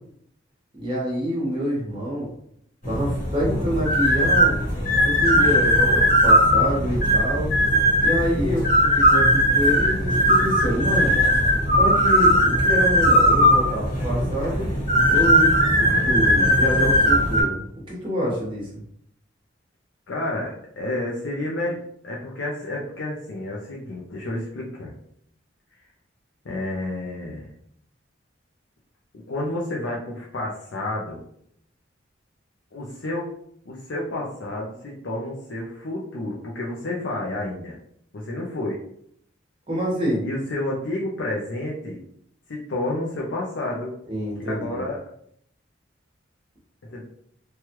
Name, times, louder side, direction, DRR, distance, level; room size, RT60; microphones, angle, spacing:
voice 1, 0.8-2.3 2.9-4.6 5.0-7.5 8.0-11.2 11.8-14.7 15.1-18.8 39.7-40.2 44.1-44.8, equal, 30° right, -4 dB, 1.1 m, -27 dB
sound 1, 2.8-17.4, equal, 45° left, 1.1 m, -19 dB
voice 2, 20.1-21.8 22.0-24.9 25.8-25.9 26.4-27.5 29.1-31.2 32.7-33.3 33.7-37.8 38.1-38.8 40.2-42.0 42.5-43.9 44.4-45.0 46.9-47.0, left 1 dB, 80° left, -3 dB, 0.6 m, -30 dB
3.1 x 2.3 x 3.0 m, 0.70 s
head